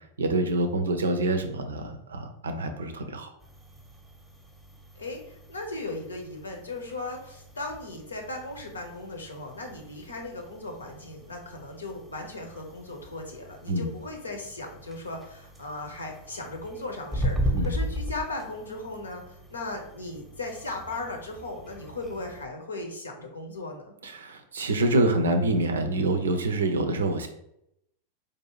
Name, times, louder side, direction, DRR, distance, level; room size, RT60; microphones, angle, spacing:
voice 1, 0.2-3.3 13.7-13.9 17.5-17.7 24.0-27.3, right 2 dB, 70° right, 7 dB, 0.5 m, -26 dB
sound 1, 3.4-22.5, equal, 5° right, 0.8 m, -38 dB
voice 2, 5.0-23.9, left 2 dB, 75° left, 3 dB, 0.8 m, -37 dB
4.7 x 2.6 x 3.0 m, 0.78 s
figure-of-eight pair, 90°, 0 cm